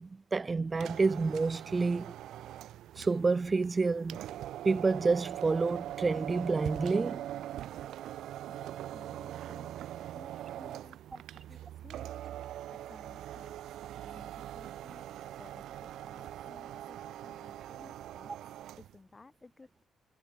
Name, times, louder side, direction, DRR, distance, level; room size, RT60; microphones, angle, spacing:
voice 1, 0.0-2.1 3.0-4.2 4.6-7.3, right 4 dB, 30° right, 0.5 m, -29 dB
sound 1, 0.7-19.0, right 12 dB, 80° right, 1.9 m, -42 dB
voice 2, 8.5-12.2 12.5-13.7 14.0-18.3 18.8-19.8, left 3 dB, 25° left, 4.2 m, -57 dB
cardioid pair, 90°, 0 cm